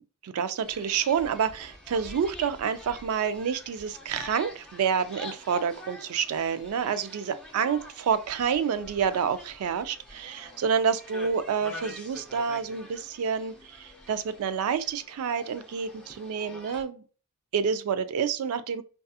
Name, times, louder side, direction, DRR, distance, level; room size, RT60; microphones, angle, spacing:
voice 1, 0.2-17.0 17.5-18.8, right 7 dB, 70° right, 0.3 m, -28 dB
sound 1, 0.6-16.8, left 1 dB, 5° left, 0.5 m, -46 dB
2.7 x 2.3 x 2.3 m
head